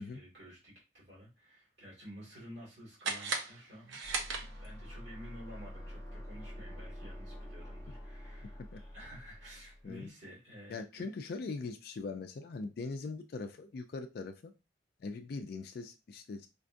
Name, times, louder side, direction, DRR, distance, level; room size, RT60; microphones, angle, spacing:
voice 1, 0.0-4.0 4.3-11.1, equal, 60° right, -6 dB, 1.9 m, -52 dB
sound 1, 3.0-4.9, right 4 dB, 75° right, 0.7 m, -37 dB
sound 2, 4.0-10.0, equal, 15° left, 0.8 m, -47 dB
voice 2, 10.7-14.5 15.0-16.5, left 3 dB, 50° left, 7 dB, 0.3 m, -41 dB
5.1 x 2.3 x 2.5 m, 0.28 s
head